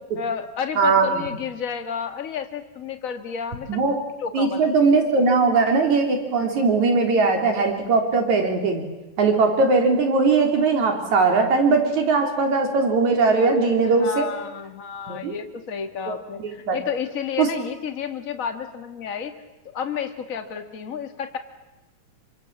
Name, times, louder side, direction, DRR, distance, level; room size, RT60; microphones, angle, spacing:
voice 1, 0.2-4.7 6.4-6.6 14.0-19.3 19.7-21.4, left 7 dB, 30° left, 7 dB, 2.0 m, -31 dB
voice 2, 0.8-1.3 3.7-4.0 4.3-8.8 9.2-14.3 15.1-15.3 16.1-16.8 17.4-17.5, right 4 dB, 75° right, 3 dB, 4.8 m, -20 dB
27.0 x 25.0 x 7.5 m, 1.0 s
omnidirectional pair, 3.3 m